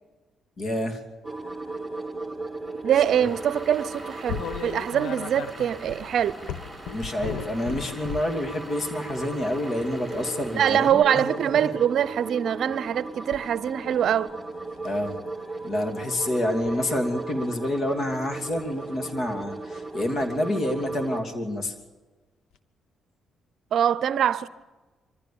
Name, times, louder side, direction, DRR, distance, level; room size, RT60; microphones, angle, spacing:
voice 1, 0.6-1.0 6.9-11.3 14.8-15.1 15.6-21.7, left 1 dB, 50° left, 2.8 m, -28 dB
sound 1, 1.2-21.2, right 3 dB, 5° left, 2.3 m, -37 dB
voice 2, 2.8-6.5 10.5-14.3 23.7-24.5, right 9 dB, 65° right, 0.6 m, -23 dB
Vehicle / Engine, 2.9-10.9, equal, 20° left, 5.0 m, -44 dB
sound 2, 4.3-8.4 9.1-9.4 11.2-11.6 13.3-13.4 13.9-14.3 14.8-15.0 16.5-16.8 18.5-18.7 20.2-20.3 21.8-21.9 22.5-22.6, left 8 dB, 85° left, 0.9 m, -36 dB
24.0 x 15.0 x 7.1 m
cardioid pair, 90°, 0 cm